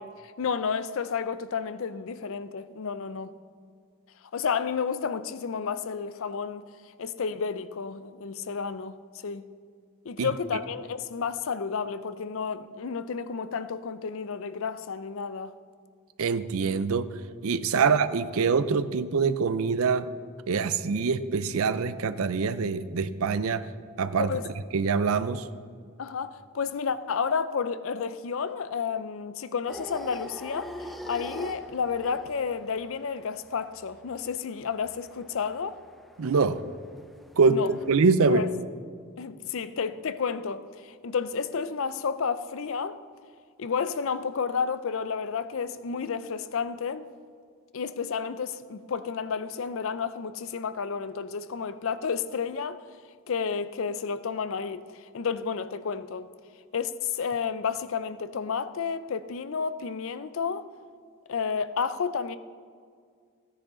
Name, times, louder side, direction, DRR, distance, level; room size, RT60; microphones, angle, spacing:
voice 1, 0.0-3.3 4.3-6.7 7.0-9.0 9.2-9.5 10.0-15.5 17.7-17.8 24.2-24.4 26.0-30.7 31.1-35.8 37.5-37.7 38.3-38.5 39.2-43.0 43.6-47.1 47.7-52.8 53.3-56.3 56.7-60.7 61.3-62.4, left 6 dB, 65° left, 0.5 m, -31 dB
voice 2, 16.2-17.1 17.4-20.1 20.5-23.7 24.0-24.3 24.7-25.5 36.2-36.6 37.4-38.4, right 5 dB, 70° right, 0.5 m, -24 dB
sound 1, 29.7-38.1, equal, ahead, 0.4 m, -45 dB
14.0 x 9.9 x 3.8 m
head